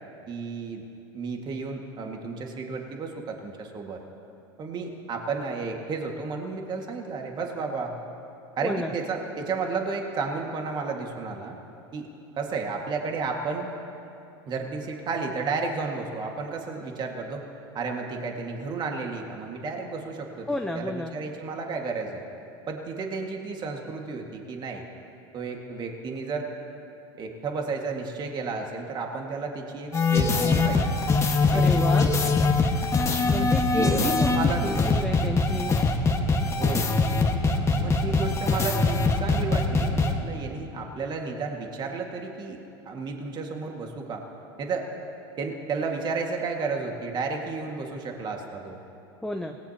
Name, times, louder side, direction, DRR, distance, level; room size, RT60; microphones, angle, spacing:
voice 1, 0.3-0.8 1.1-4.0 4.6-7.9 8.6-11.6 11.9-12.1 12.4-13.7 14.5-17.4 17.7-20.5 20.8-22.2 22.7-24.8 25.3-26.5 27.2-30.9 31.5-31.9 32.2-32.3 33.4-35.0 36.5-36.9 37.7-42.6 42.9-44.2 44.6-44.9 45.4-48.8, right 4 dB, 35° right, 2 dB, 1.9 m, -32 dB
voice 2, 8.6-8.9 20.5-21.1 31.5-32.1 33.2-34.3 34.6-35.8 49.2-49.6, left 1 dB, 5° left, 4 dB, 0.8 m, -30 dB
sound 1, 29.9-40.1, left 3 dB, 20° left, 1.6 m, -22 dB
26.0 x 18.5 x 2.9 m, 2.8 s
hypercardioid pair, 105°, 13 cm